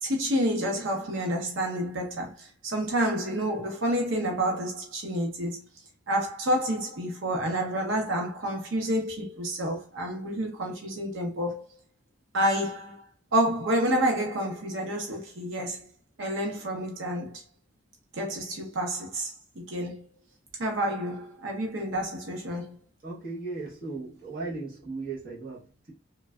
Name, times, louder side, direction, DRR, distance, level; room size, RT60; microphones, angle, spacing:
voice 1, 0.0-5.6 6.1-11.6 12.3-13.0 13.3-15.9 16.2-17.4 18.1-20.0 20.6-22.7, right 1 dB, 80° right, 0.8 m, -29 dB
voice 2, 23.0-25.9, right 3 dB, 45° right, 0.9 m, -37 dB
3.2 x 2.2 x 2.2 m
head